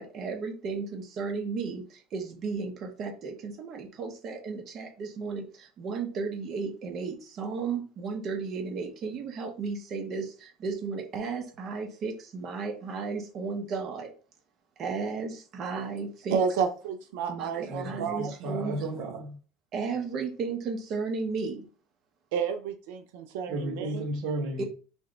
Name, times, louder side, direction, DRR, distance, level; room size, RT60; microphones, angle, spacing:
voice 1, 0.0-1.8 2.1-2.7 3.0-3.7 4.0-4.6 5.2-5.4 5.8-10.2 10.6-14.1 14.8-15.3 15.6-16.4 17.3-18.7 19.7-21.6 24.6-24.7, right 4 dB, 35° right, 0.9 m, -33 dB
voice 2, 16.3-18.3 22.3-23.0 23.3-24.0, right 6 dB, 85° right, 0.6 m, -30 dB
voice 3, 17.6-19.4 23.5-24.6, right 1 dB, 50° right, 1.2 m, -33 dB
3.6 x 3.1 x 3.9 m
cardioid pair, 160°, 0 cm